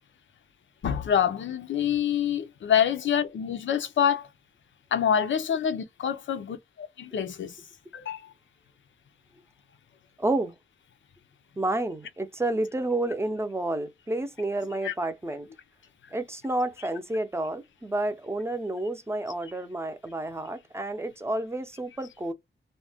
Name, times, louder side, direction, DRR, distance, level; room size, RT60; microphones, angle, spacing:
voice 1, 0.8-4.3 4.9-7.6 7.9-8.3 14.8-14.9, left 8 dB, 80° left, 0.5 m, -26 dB
voice 2, 10.2-10.6 11.6-15.5 16.1-22.3, right 2 dB, 15° right, 0.5 m, -30 dB
2.5 x 2.1 x 3.4 m
wide cardioid pair, 100°, 19 cm